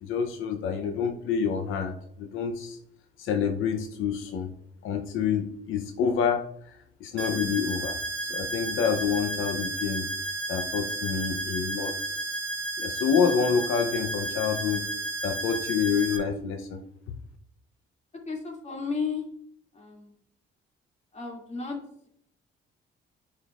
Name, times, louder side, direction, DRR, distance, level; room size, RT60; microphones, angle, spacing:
voice 1, 0.0-2.8 3.2-4.5 4.8-8.0 8.3-12.3 12.8-14.9 15.2-16.8, left 6 dB, 90° left, 5 dB, 0.7 m, -28 dB
sound 1, 7.2-16.2, right 2 dB, 70° right, 1.2 m, -32 dB
voice 2, 18.3-19.2 19.7-20.1 21.1-21.8, left 5 dB, 35° left, 0 dB, 2.3 m, -33 dB
9.8 x 5.2 x 2.4 m, 0.69 s
cardioid pair, 90°, 20 cm